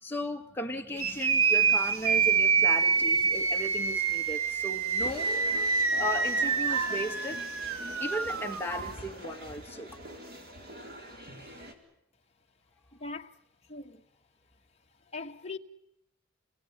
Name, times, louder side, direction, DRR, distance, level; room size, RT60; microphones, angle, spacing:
voice 1, 0.0-5.4 6.0-7.4 8.0-10.0, equal, 10° left, 1.8 m, -36 dB
sound 1, 1.0-8.9, right 5 dB, 85° right, 1.5 m, -27 dB
sound 2, 5.0-11.7, right 1 dB, 45° right, 4.2 m, -43 dB
voice 2, 12.9-13.3 13.7-14.0 15.1-15.6, left 3 dB, 30° left, 1.6 m, -40 dB
28.0 x 20.5 x 9.7 m
head